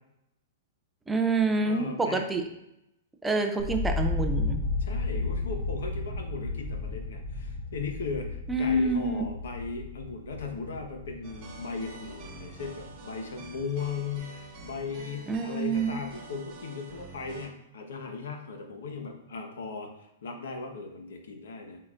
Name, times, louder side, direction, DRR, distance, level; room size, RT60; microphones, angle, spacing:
voice 1, 1.1-2.4 3.2-4.6 8.5-9.2 15.3-16.0, right 2 dB, 5° right, 4 dB, 0.4 m, -27 dB
voice 2, 1.6-2.3 4.8-21.8, left 4 dB, 80° left, 3 dB, 1.2 m, -37 dB
sound 1, 3.6-13.6 13.9-14.6, left 3 dB, 20° left, 2.0 m, -34 dB
sound 2, 11.2-17.5, right 3 dB, 25° right, 1.4 m, -47 dB
8.3 x 4.4 x 2.6 m, 0.85 s
hypercardioid pair, 165°, 0 cm